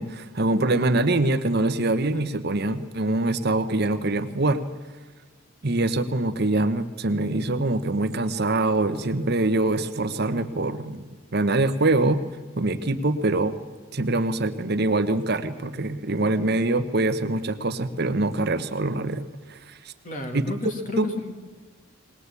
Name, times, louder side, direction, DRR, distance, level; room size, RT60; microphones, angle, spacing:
voice 1, 0.0-4.6 5.6-11.0 11.3-12.2 12.6-13.6 13.9-19.9 20.3-20.5 21.0-21.1, right 2 dB, 50° right, 9 dB, 1.0 m, -24 dB
voice 2, 20.0-21.3, left 2 dB, 40° left, 4 dB, 2.6 m, -32 dB
20.0 x 19.5 x 8.3 m, 1.4 s
head